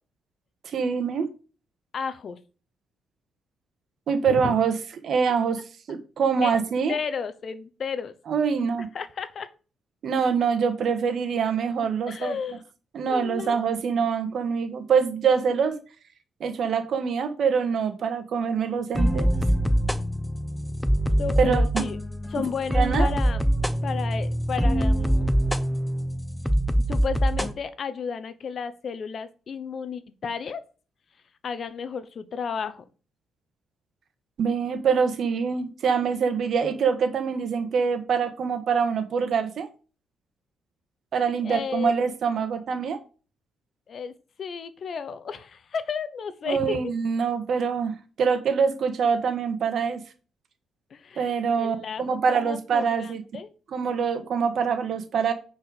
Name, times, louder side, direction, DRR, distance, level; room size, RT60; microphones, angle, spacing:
voice 1, 0.6-1.3 4.1-4.7 5.0-5.6 5.9-7.0 8.3-8.9 10.0-12.3 12.9-15.8 16.4-19.3 21.4-21.6 22.7-23.1 34.4-39.7 41.1-43.0 46.5-50.0 51.2-53.2 53.7-55.3, right 6 dB, 60° right, 9 dB, 1.6 m, -24 dB
voice 2, 1.9-2.4 4.3-4.6 6.4-6.5 6.9-8.1 8.9-9.5 12.1-12.6 13.1-13.6 21.2-22.0 22.3-23.4 23.8-25.3 26.8-30.6 31.4-32.8 41.4-41.9 43.9-44.1 44.4-46.9 50.9-53.5, left 6 dB, 50° left, 13 dB, 0.9 m, -33 dB
sound 1, 18.9-27.5, equal, 5° left, 0.8 m, -24 dB
9.4 x 4.6 x 4.9 m, 0.36 s
cardioid pair, 90°, 0 cm